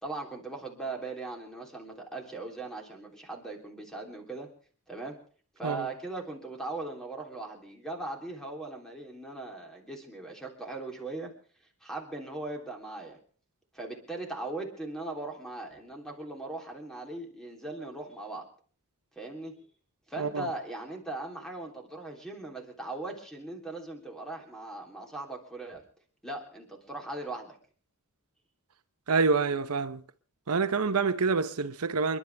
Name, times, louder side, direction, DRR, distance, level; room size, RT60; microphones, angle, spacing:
voice 1, 0.0-4.5 4.9-5.2 5.6-11.3 11.8-13.2 13.7-18.5 19.1-19.6 20.1-25.8 26.2-27.6, right 2 dB, ahead, 3.3 m, -39 dB
voice 2, 29.1-30.0 30.5-32.2, right 4 dB, 85° right, 0.9 m, -27 dB
29.0 x 11.5 x 3.5 m
head